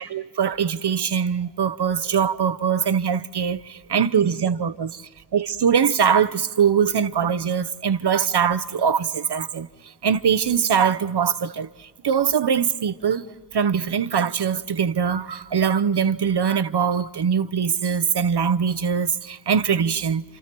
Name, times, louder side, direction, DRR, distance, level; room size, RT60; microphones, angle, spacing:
voice 1, 0.0-5.0 5.3-9.7 10.0-11.7 12.0-13.2 13.5-20.2, right 7 dB, 90° right, 0.7 m, -22 dB
28.0 x 28.0 x 4.5 m
wide cardioid pair, 60°, 39 cm